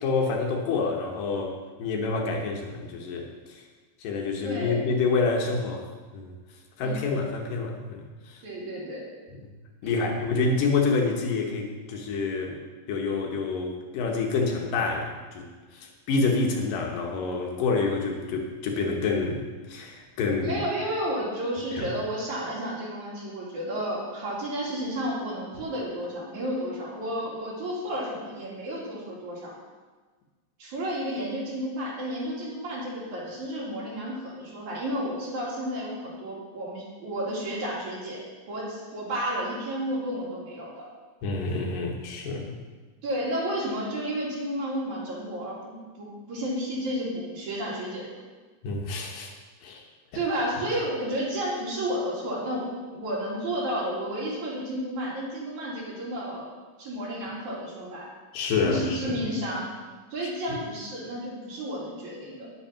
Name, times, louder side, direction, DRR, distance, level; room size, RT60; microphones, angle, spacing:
voice 1, 0.0-3.6 4.0-5.9 6.1-6.4 6.8-8.4 9.4-9.5 9.8-12.6 12.9-20.6 21.8-21.9 41.2-42.5 48.6-49.3 49.6-49.8 58.3-59.2 60.2-60.3, left 4 dB, 80° left, 1 dB, 2.9 m, -28 dB
voice 2, 4.4-4.8 6.8-7.0 8.4-9.0 9.8-10.1 20.4-29.5 30.6-38.2 38.5-40.9 43.0-48.2 50.1-56.5 56.8-58.1 58.6-59.7 60.1-62.5, equal, 60° right, -5 dB, 4.0 m, -32 dB
10.5 x 8.5 x 5.7 m, 1.3 s
omnidirectional pair, 3.9 m